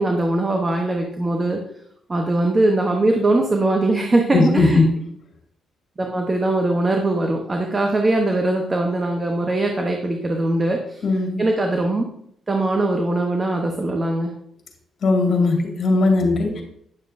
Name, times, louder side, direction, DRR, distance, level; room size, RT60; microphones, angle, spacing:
voice 1, 0.0-1.6 2.1-4.8 6.0-11.0 11.4-12.0 12.5-14.3, right 2 dB, 25° right, 2 dB, 0.9 m, -21 dB
voice 2, 4.3-4.9 11.0-11.4 15.0-16.6, left 3 dB, 55° left, 2 dB, 2.0 m, -18 dB
9.7 x 6.7 x 2.6 m, 0.71 s
cardioid pair, 90°, 0 cm